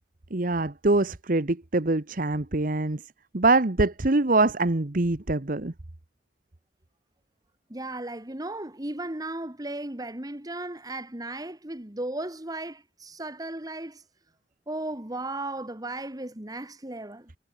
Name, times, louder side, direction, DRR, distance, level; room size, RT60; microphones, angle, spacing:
voice 1, 0.3-3.0 3.3-5.7, right 2 dB, 50° right, 1.2 m, -24 dB
voice 2, 7.7-14.0 14.7-17.3, right 2 dB, 20° right, 1.7 m, -35 dB
head